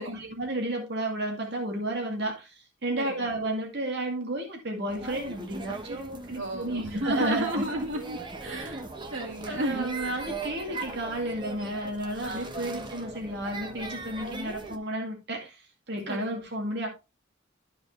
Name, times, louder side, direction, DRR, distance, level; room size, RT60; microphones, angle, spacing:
voice 1, 0.0-7.6 9.5-15.6 15.9-16.9, right 1 dB, 55° right, 2.3 m, -32 dB
voice 2, 3.0-3.3 6.4-8.8 9.1-9.9 12.2-12.9 16.1-16.4, right 1 dB, 75° right, 2.2 m, -33 dB
sound 1, 4.9-14.8, right 3 dB, 25° right, 1.0 m, -39 dB
13.0 x 5.1 x 3.2 m
head